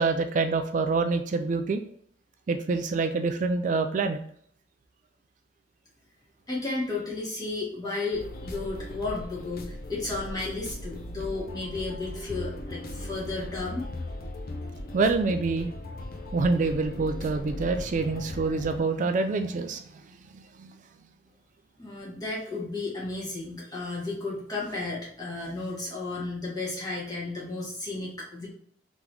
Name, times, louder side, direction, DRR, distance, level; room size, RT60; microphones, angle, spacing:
voice 1, 0.0-1.8 2.5-4.2 14.9-15.7 16.3-19.8 20.3-20.7, right 4 dB, 45° right, 7 dB, 0.4 m, -26 dB
voice 2, 6.5-13.9 21.8-28.5, left 3 dB, 20° left, -6 dB, 1.7 m, -33 dB
sound 1, 8.1-18.8, left 1 dB, 55° left, 0.6 m, -38 dB
3.7 x 3.0 x 3.4 m, 0.62 s
head